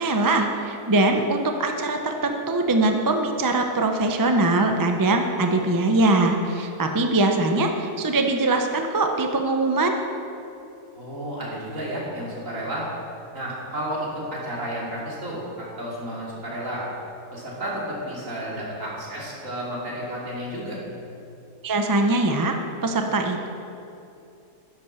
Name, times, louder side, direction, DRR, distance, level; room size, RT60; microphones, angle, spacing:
voice 1, 0.0-10.0 21.6-22.6 22.8-23.5, right 2 dB, 25° right, 4 dB, 0.4 m, -22 dB
voice 2, 10.9-12.9 13.3-16.9 17.3-20.8, right 1 dB, 55° right, -6 dB, 3.3 m, -32 dB
10.5 x 8.6 x 6.7 m, 2.8 s
omnidirectional pair, 1.6 m